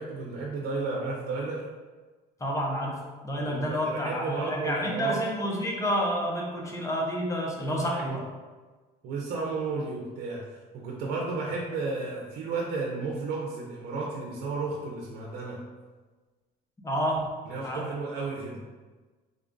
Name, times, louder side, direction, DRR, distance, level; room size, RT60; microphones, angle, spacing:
voice 1, 0.0-1.7 3.4-5.2 7.7-8.1 9.0-15.6 17.5-18.6, right 3 dB, 65° right, -2 dB, 0.7 m, -33 dB
voice 2, 2.4-8.3 16.8-17.4 17.6-17.8, equal, 20° left, -1 dB, 0.8 m, -29 dB
3.8 x 2.4 x 3.8 m, 1.3 s
cardioid pair, 110°, 17 cm